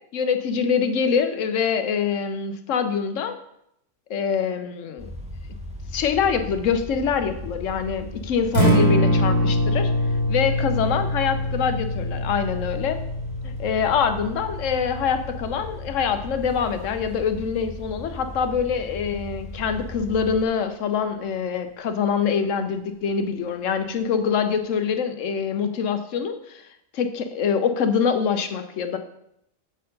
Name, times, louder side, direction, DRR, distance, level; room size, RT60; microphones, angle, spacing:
voice 1, 0.1-3.3 4.1-5.1 5.9-9.9 10.3-13.0 13.4-26.6 26.9-29.0, left 6 dB, 85° left, 8 dB, 1.1 m, -24 dB
sound 1, 5.0-20.4, left 1 dB, 5° right, 0.8 m, -38 dB
Acoustic guitar, 8.4-16.6, equal, 75° right, 2.4 m, -25 dB
7.6 x 4.3 x 5.2 m, 0.76 s
omnidirectional pair, 1.3 m